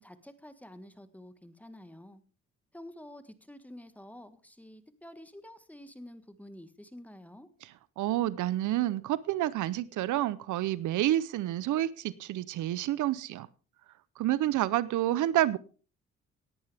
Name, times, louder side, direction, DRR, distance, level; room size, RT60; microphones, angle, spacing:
voice 1, 0.0-2.2 2.7-7.5, left 1 dB, 5° left, 1.6 m, -49 dB
voice 2, 8.0-13.5 14.2-15.6, right 14 dB, 80° right, 0.7 m, -29 dB
18.0 x 10.5 x 3.4 m
cardioid pair, 90°, 30 cm